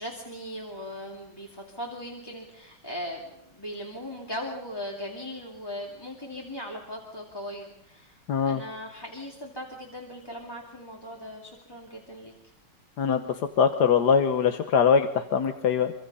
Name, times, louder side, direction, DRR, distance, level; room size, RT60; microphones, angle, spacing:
voice 1, 0.0-12.3, equal, 10° left, -1 dB, 2.4 m, -39 dB
voice 2, 8.3-8.6 13.0-13.2 13.6-15.9, left 7 dB, 60° left, 8 dB, 1.5 m, -22 dB
25.5 x 25.0 x 5.5 m, 0.83 s
omnidirectional pair, 2.2 m